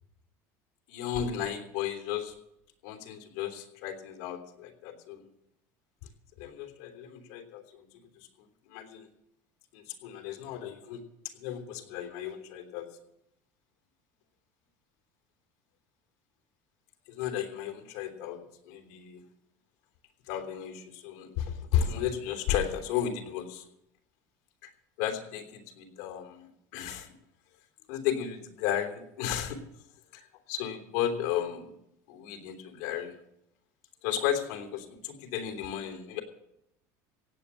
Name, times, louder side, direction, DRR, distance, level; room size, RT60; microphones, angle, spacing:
voice 1, 0.9-2.3 2.8-5.2 6.4-7.9 8.2-8.3 8.7-9.0 9.7-11.0 11.4-12.9 17.1-19.2 20.3-23.6 24.6-24.7 25.0-27.1 27.9-29.6 30.1-30.2 30.5-31.7 32.1-33.1 34.0-36.2, left 9 dB, 90° left, 3 dB, 3.4 m, -34 dB
17.0 x 8.4 x 7.4 m, 0.82 s
cardioid pair, 160°, 8 cm